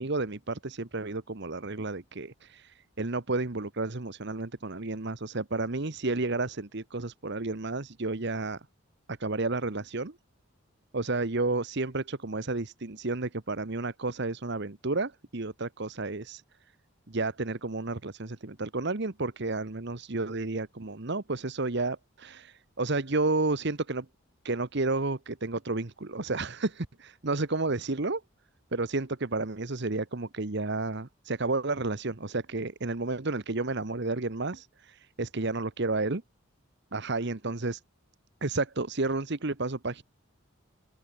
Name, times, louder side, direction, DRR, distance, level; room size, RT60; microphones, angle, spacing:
voice 1, 0.0-8.6 9.1-10.2 10.9-16.4 17.1-24.1 24.4-28.2 28.7-36.2 36.9-37.8 38.4-40.0, right 3 dB, 55° right, 1.2 m, -31 dB
head